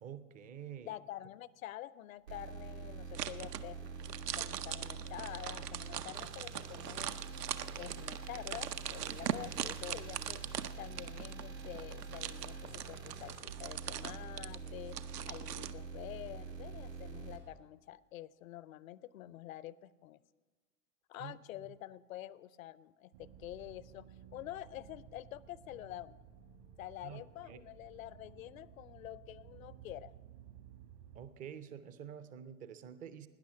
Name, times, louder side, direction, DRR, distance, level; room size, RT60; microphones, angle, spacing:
voice 1, 0.0-0.9 21.2-21.3 21.6-21.7 27.0-27.6 31.1-33.3, right 8 dB, 20° right, 13 dB, 0.5 m, -48 dB
voice 2, 0.8-3.8 4.3-7.2 7.8-10.4 10.8-15.0 15.3-20.2 21.1-26.2 26.8-30.1, left 14 dB, 55° left, 19 dB, 0.6 m, -47 dB
sound 1, 2.3-17.4, right 5 dB, 85° right, 2.9 m, -46 dB
sound 2, 3.1-15.7, right 10 dB, 70° right, 0.7 m, -41 dB
sound 3, 23.1-31.3, right 9 dB, 55° right, 1.5 m, -56 dB
17.5 x 10.0 x 5.7 m, 1.3 s
figure-of-eight pair, 100°, 49 cm